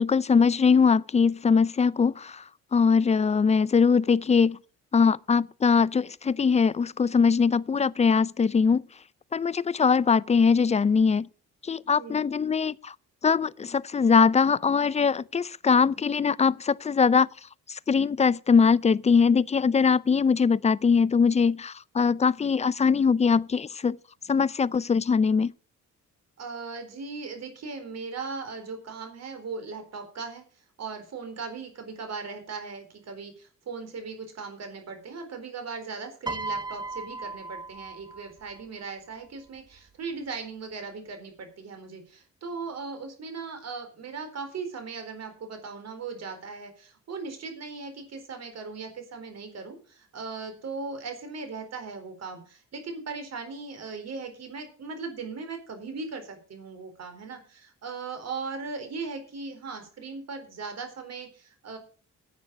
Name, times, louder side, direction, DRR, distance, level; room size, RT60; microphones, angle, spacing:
voice 1, 0.0-2.4 2.7-4.6 4.9-8.8 9.3-11.3 11.7-12.9 13.2-17.3 17.9-24.0 24.3-25.5, left 5 dB, 20° left, 0.4 m, -22 dB
voice 2, 11.9-12.2 24.2-24.4 26.4-30.4 30.8-61.8, right 4 dB, 60° right, 4.3 m, -38 dB
Piano, 36.3-38.6 39.7-39.9, right 3 dB, 15° right, 0.9 m, -36 dB
10.0 x 8.7 x 6.5 m
cardioid pair, 90°, 30 cm